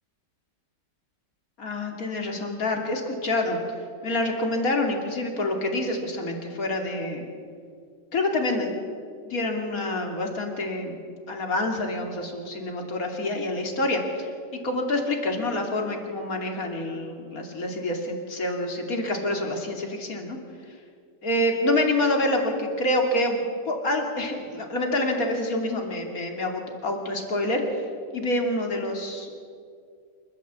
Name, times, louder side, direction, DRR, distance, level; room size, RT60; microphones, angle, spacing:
voice 1, 1.6-3.6 4.0-7.2 8.1-8.7 9.2-11.0 11.3-14.3 14.6-20.4 21.2-23.4 23.7-27.6 28.1-29.3, left 1 dB, 50° left, 2 dB, 3.2 m, -27 dB
28.0 x 13.5 x 8.3 m, 2.3 s
omnidirectional pair, 2.0 m